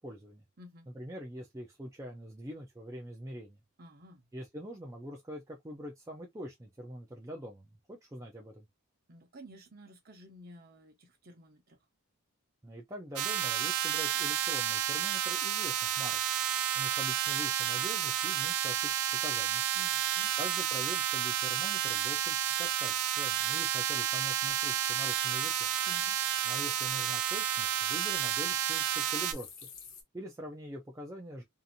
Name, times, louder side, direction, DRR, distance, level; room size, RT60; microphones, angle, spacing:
voice 1, 0.0-0.4 0.9-3.6 4.3-8.6 12.6-16.2 16.8-18.9 19.2-19.6 20.4-25.7 26.4-29.5 30.1-31.4, equal, 15° right, 0.4 m, -44 dB
voice 2, 0.6-0.9 3.8-4.2 9.1-11.8 19.7-20.3 25.8-26.2, equal, 45° right, 0.8 m, -53 dB
sound 1, 13.2-29.3, right 12 dB, 85° right, 0.4 m, -31 dB
sound 2, 24.5-30.0, left 6 dB, 65° left, 0.9 m, -47 dB
2.7 x 2.5 x 2.5 m
head